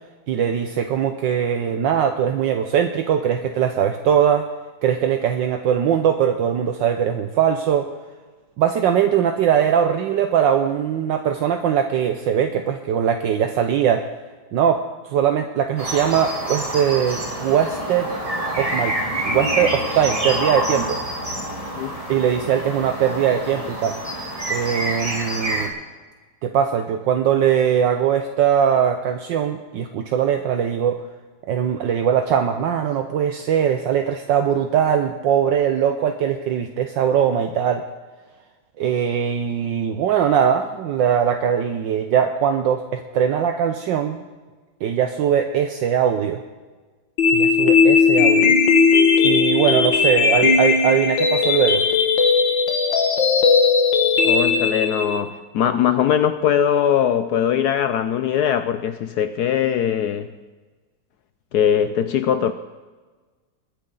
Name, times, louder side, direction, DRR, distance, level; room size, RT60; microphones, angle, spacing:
voice 1, 0.3-4.4 4.8-7.9 8.6-14.0 14.5-14.8 15.1-18.1 18.6-19.0 19.3-21.0 22.1-23.9 24.5-25.7 26.4-31.0 31.5-37.8 38.8-44.2 44.8-46.4 47.3-48.6 49.2-51.8, right 8 dB, 70° right, 6 dB, 1.3 m, -21 dB
sound 1, 15.8-25.7, right 1 dB, 15° right, 2.5 m, -27 dB
sound 2, 47.2-55.2, left 5 dB, 65° left, 2.0 m, -17 dB
voice 2, 54.2-60.3 61.5-62.5, left 9 dB, 80° left, 10 dB, 0.9 m, -21 dB
21.5 x 9.7 x 3.9 m, 1.3 s
omnidirectional pair, 2.3 m